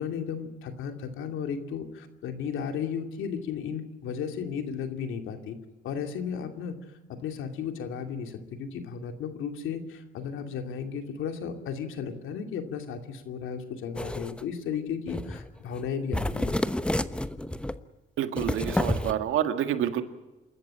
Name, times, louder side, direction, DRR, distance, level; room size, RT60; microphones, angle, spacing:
voice 1, 0.0-5.6 5.8-6.7 7.1-16.6, left 7 dB, 85° left, 2.6 m, -34 dB
sound 1, 14.0-14.4 15.1-15.5 15.8-15.9 16.1-17.8 18.4-19.1, left 1 dB, 5° left, 1.0 m, -29 dB
voice 2, 18.2-20.0, right 10 dB, 85° right, 1.8 m, -28 dB
28.0 x 14.0 x 8.8 m
cardioid pair, 90°, 20 cm